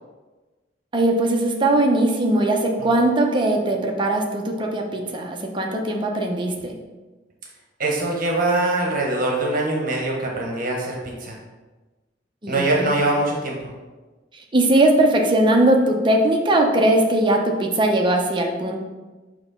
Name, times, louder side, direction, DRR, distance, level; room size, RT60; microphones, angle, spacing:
voice 1, 0.9-6.7 12.4-13.0 14.3-18.8, right 1 dB, 25° right, 1 dB, 0.8 m, -20 dB
voice 2, 7.8-11.4 12.5-13.7, right 2 dB, 50° right, -1 dB, 1.1 m, -23 dB
6.5 x 3.0 x 5.5 m, 1.2 s
head